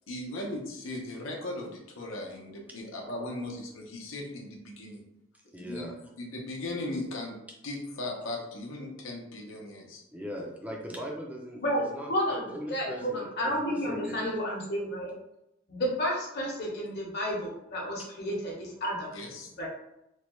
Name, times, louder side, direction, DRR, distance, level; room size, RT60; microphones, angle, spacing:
voice 1, 0.1-5.0 5.6-7.4 7.6-10.0 19.1-19.5, left 1 dB, 90° left, 0 dB, 0.7 m, -38 dB
voice 2, 5.5-5.9 10.1-11.6 11.9-14.4, equal, 10° right, -1 dB, 0.4 m, -40 dB
voice 3, 11.6-15.1 15.7-19.1 19.6-19.7, equal, 55° left, -3 dB, 0.9 m, -31 dB
3.1 x 2.3 x 3.0 m, 0.86 s
head